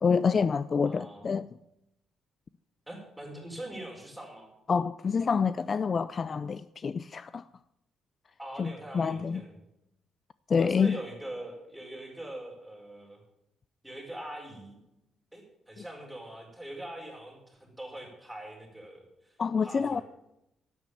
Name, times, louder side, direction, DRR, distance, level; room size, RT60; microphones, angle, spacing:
voice 1, 0.0-1.5 4.7-7.4 8.6-9.4 10.5-11.0 19.4-20.0, left 5 dB, 40° left, 0.4 m, -27 dB
voice 2, 0.8-1.3 2.9-4.5 8.4-9.5 10.6-13.2 13.8-14.8 15.3-19.4 19.6-20.0, right 1 dB, 5° right, 4.9 m, -43 dB
11.0 x 9.1 x 7.2 m
cardioid pair, 90°, 0 cm